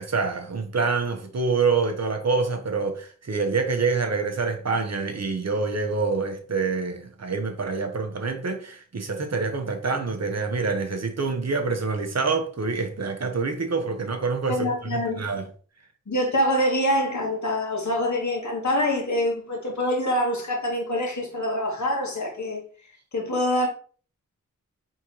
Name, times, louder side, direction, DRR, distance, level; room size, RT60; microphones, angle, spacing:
voice 1, 0.0-15.4, right 4 dB, 50° right, 1.0 m, -26 dB
voice 2, 14.5-15.2 16.1-22.6 23.1-23.7, equal, 60° left, 1.6 m, -25 dB
4.4 x 3.7 x 3.0 m
cardioid pair, 50°, 33 cm